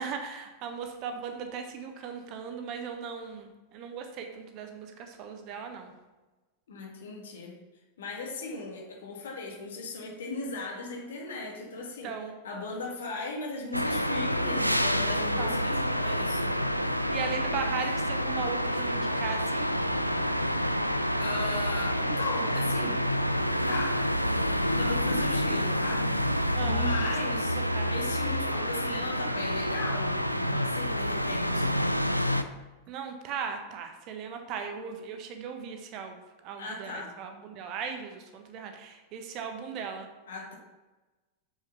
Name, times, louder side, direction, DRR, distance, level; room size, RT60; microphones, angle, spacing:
voice 1, 0.0-5.9 12.0-12.3 15.4-15.7 17.1-19.8 26.5-27.1 27.6-27.9 32.9-40.1, right 6 dB, 40° right, 5 dB, 1.3 m, -38 dB
voice 2, 6.7-7.5 8.0-12.2 12.4-16.6 21.2-23.0 23.7-24.0 24.8-26.1 26.6-27.6 27.9-31.8 36.6-37.1 40.3-40.6, left 3 dB, 65° left, 0 dB, 1.8 m, -37 dB
sound 1, 13.7-32.4, equal, 90° right, 0.4 m, -28 dB
7.2 x 6.3 x 5.7 m, 1.2 s
figure-of-eight pair, 90°, 0 cm